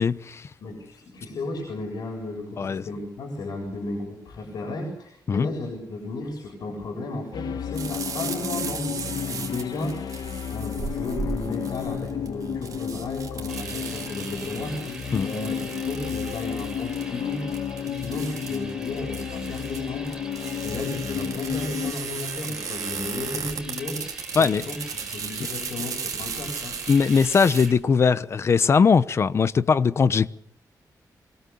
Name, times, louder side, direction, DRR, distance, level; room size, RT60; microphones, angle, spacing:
voice 1, 0.0-0.4 2.6-2.8 5.3-5.5 15.1-15.3 24.4-24.6 26.9-30.3, left 5 dB, 40° left, 0.9 m, -20 dB
voice 2, 0.6-17.5 17.9-20.1 20.6-24.0 24.3-24.8 25.1-26.8, left 2 dB, 70° left, 7.7 m, -34 dB
sound 1, 7.3-21.9, left 8 dB, 85° left, 1.6 m, -32 dB
sound 2, 7.7-27.7, right 6 dB, 55° right, 5.2 m, -36 dB
sound 3, 13.5-27.7, right 2 dB, 10° right, 4.2 m, -43 dB
25.0 x 22.5 x 7.1 m
wide cardioid pair, 170°, 7 cm